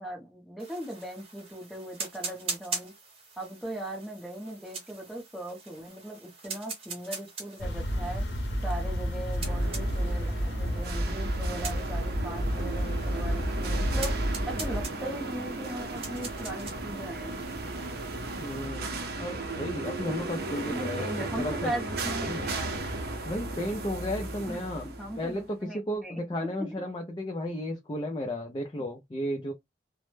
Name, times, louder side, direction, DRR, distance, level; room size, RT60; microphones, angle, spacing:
voice 1, 0.0-2.9 3.4-8.2 8.6-14.1 14.5-17.5 20.7-22.7 24.5-24.6 25.0-26.2, right 1 dB, ahead, 0.8 m, -39 dB
sound 1, 0.6-18.7, right 4 dB, 30° right, 0.9 m, -43 dB
sound 2, 7.6-14.9, equal, 80° left, 0.7 m, -30 dB
sound 3, 9.4-25.4, right 2 dB, 60° right, 0.6 m, -36 dB
voice 2, 18.4-21.7 22.2-22.5 23.2-24.9 25.2-29.5, left 1 dB, 25° left, 0.4 m, -34 dB
2.1 x 2.0 x 3.1 m
head